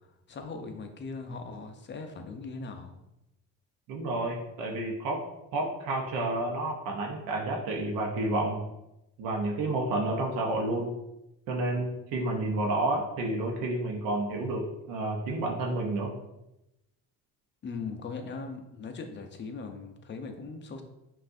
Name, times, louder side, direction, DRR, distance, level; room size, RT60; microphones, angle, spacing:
voice 1, 0.3-3.0 17.6-20.8, left 4 dB, 35° left, 5 dB, 0.6 m, -39 dB
voice 2, 3.9-5.2 5.5-8.6 9.2-10.9 11.5-16.1, right 2 dB, 80° right, -1 dB, 0.8 m, -30 dB
5.4 x 2.5 x 2.6 m, 0.90 s
cardioid pair, 105°, 34 cm